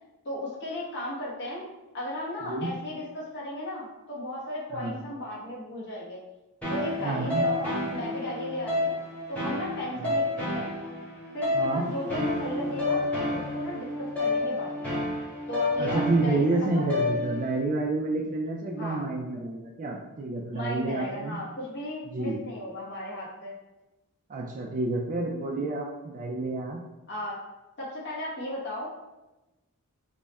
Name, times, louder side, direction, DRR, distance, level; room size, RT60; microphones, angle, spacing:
voice 1, 0.2-1.6 1.9-6.2 6.7-9.0 9.3-10.7 11.3-14.9 15.5-16.4 16.7-16.9 18.8-19.0 20.5-23.5 27.1-27.4 27.8-28.9, left 1 dB, 50° left, -6 dB, 0.9 m, -35 dB
sound 1, 6.6-17.6, left 2 dB, 5° left, 0.9 m, -30 dB
voice 2, 7.0-7.4 9.9-10.1 11.5-11.9 15.8-21.4 22.1-22.4 24.3-26.8, right 2 dB, 35° right, -1 dB, 0.3 m, -29 dB
3.4 x 2.1 x 4.0 m, 1.0 s
head